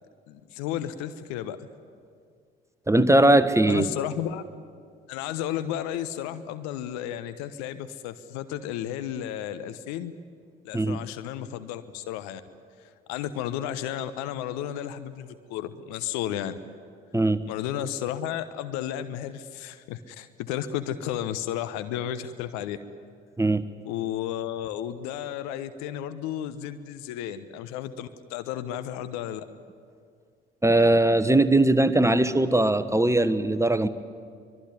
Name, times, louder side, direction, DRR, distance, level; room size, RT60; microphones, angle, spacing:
voice 1, 0.3-1.7 3.7-4.4 5.1-10.1 10.6-12.4 12.8-16.6 17.5-22.8 23.8-29.4, left 11 dB, 65° left, 12 dB, 1.1 m, -33 dB
voice 2, 2.9-3.9 10.7-11.0 17.1-17.4 23.4-23.6 30.6-33.9, right 1 dB, 10° right, 11 dB, 1.3 m, -20 dB
24.5 x 21.5 x 9.7 m, 2.1 s
figure-of-eight pair, 50°, 30 cm